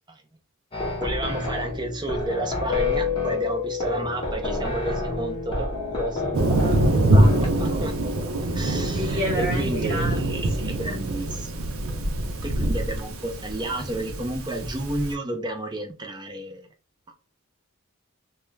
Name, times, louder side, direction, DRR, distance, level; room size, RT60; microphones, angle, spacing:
sound 1, 0.7-7.5, left 1 dB, 25° left, 0.7 m, -30 dB
voice 1, 1.0-8.0 8.5-11.5 12.4-16.7 17.1-17.2, right 1 dB, 20° right, 0.5 m, -31 dB
Keyboard (musical), 2.7-5.2, left 10 dB, 75° left, 0.4 m, -29 dB
voice 2, 4.4-4.7 8.9-10.7, equal, 55° right, 0.8 m, -31 dB
Thunder, 6.3-15.1, right 1 dB, 80° right, 0.6 m, -24 dB
2.3 x 2.2 x 3.1 m
head